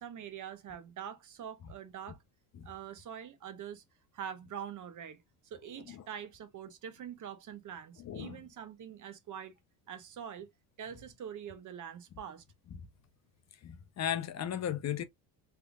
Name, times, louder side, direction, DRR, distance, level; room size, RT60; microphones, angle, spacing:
voice 1, 0.0-2.2 2.6-3.8 4.1-9.5 9.9-10.5 10.8-12.4, right 8 dB, 45° right, 0.9 m, -44 dB
voice 2, 8.0-8.4 13.6-15.0, left 10 dB, 40° left, 0.7 m, -35 dB
3.4 x 3.3 x 2.3 m
supercardioid pair, 90°, 44 cm